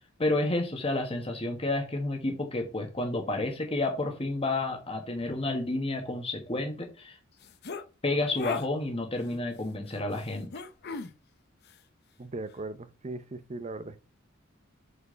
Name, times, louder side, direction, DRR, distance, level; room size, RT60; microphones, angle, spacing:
voice 1, 0.2-7.2 8.0-10.5, left 2 dB, 30° left, 1.6 m, -30 dB
sound 1, 7.4-7.8 8.3-8.7 10.5-11.1, left 4 dB, 55° left, 0.8 m, -35 dB
voice 2, 12.2-14.0, right 2 dB, 35° right, 0.7 m, -38 dB
6.7 x 4.7 x 5.7 m
head